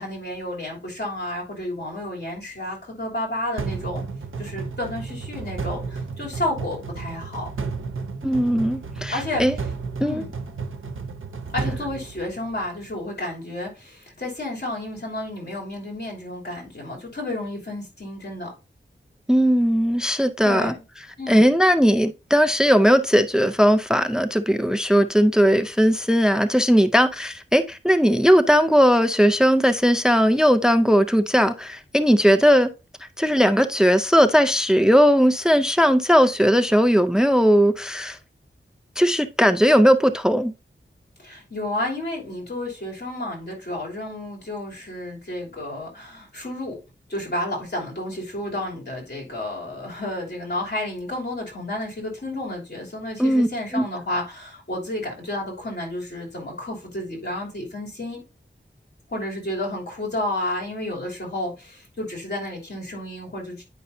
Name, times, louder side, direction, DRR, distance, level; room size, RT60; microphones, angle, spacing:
voice 1, 0.0-4.0 4.4-7.5 9.1-9.4 10.0-10.3 11.5-18.5 20.4-20.8 21.2-21.5 41.2-46.8 47.1-58.2 59.1-63.6, left 1 dB, 55° left, 3.1 m, -31 dB
sound 1, 3.6-12.8, right 4 dB, 85° right, 0.8 m, -32 dB
voice 2, 8.2-9.5 10.0-10.2 19.3-20.7 21.3-32.7 33.2-38.2 39.0-40.5 53.2-53.5 53.7-53.8, equal, 5° right, 0.5 m, -18 dB
9.7 x 5.3 x 2.7 m
wide cardioid pair, 75°, 20 cm